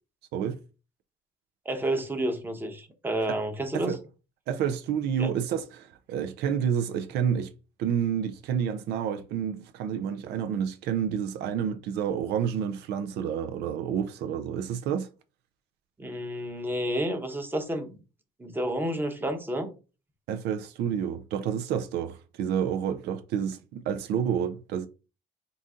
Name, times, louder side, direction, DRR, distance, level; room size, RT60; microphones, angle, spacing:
voice 1, 1.6-4.0 5.2-5.3 16.0-18.0 18.4-19.7, right 1 dB, 10° right, 0.9 m, -30 dB
voice 2, 4.5-7.5 7.8-15.1 20.3-24.9, right 8 dB, 80° right, 0.5 m, -29 dB
3.9 x 2.5 x 3.6 m
cardioid pair, 110°, 17 cm